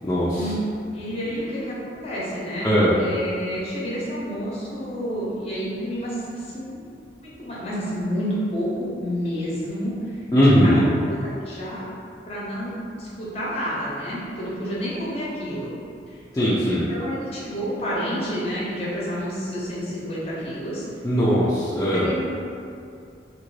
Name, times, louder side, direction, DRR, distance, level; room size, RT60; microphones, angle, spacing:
voice 1, 0.9-6.9 7.2-10.2 10.4-11.9 12.3-15.7 16.1-16.2 16.6-20.8 21.9-22.2, equal, 35° left, -7 dB, 0.8 m, -29 dB
voice 2, 10.3-10.8 16.3-16.8 21.0-22.1, equal, 20° left, -10 dB, 0.4 m, -19 dB
2.9 x 2.5 x 3.1 m, 2.4 s
head